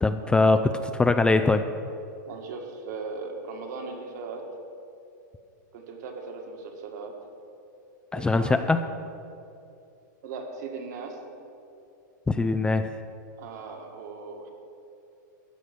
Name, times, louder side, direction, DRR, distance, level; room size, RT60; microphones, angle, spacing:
voice 1, 0.0-1.6 8.1-8.8 12.3-12.9, left 3 dB, 10° left, 9 dB, 0.4 m, -22 dB
voice 2, 2.3-4.5 5.7-7.2 8.1-8.7 10.2-11.2 13.4-14.5, right 4 dB, 60° right, 2 dB, 1.9 m, -38 dB
13.5 x 4.7 x 8.3 m, 2.7 s
hypercardioid pair, 115°, 10 cm